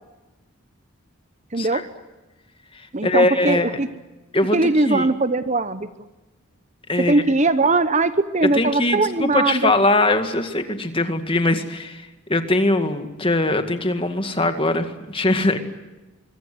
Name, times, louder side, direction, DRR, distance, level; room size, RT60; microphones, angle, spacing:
voice 1, 1.5-1.8 2.9-3.9 4.5-5.9 7.0-9.7, right 3 dB, 30° right, 12 dB, 0.9 m, -20 dB
voice 2, 2.7-3.8 4.3-4.6 4.9-5.1 6.9-7.2 8.5-15.6, left 2 dB, 25° left, 8 dB, 2.0 m, -21 dB
25.0 x 24.0 x 7.8 m, 1.1 s
head